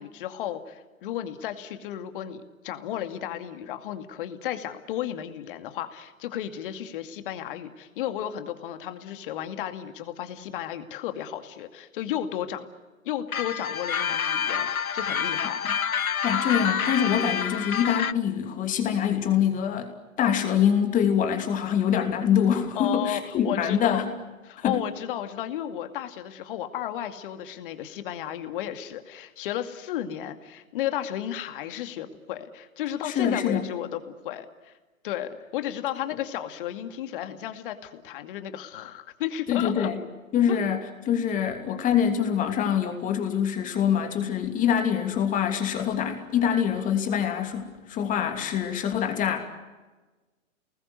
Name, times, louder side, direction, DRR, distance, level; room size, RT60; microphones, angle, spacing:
voice 1, 0.0-12.7 13.0-15.6 22.7-24.0 24.4-34.7 35.0-39.9 40.5-40.6, left 11 dB, 40° left, 9 dB, 2.4 m, -33 dB
sound 1, 13.3-18.1, left 7 dB, 85° left, 0.7 m, -27 dB
voice 2, 16.2-19.9 20.2-24.1 24.6-24.8 33.0-33.6 39.5-40.0 40.3-40.8 41.1-49.4, left 8 dB, 20° left, 5 dB, 2.9 m, -25 dB
30.0 x 20.0 x 8.1 m, 1.2 s
figure-of-eight pair, 125°, 41 cm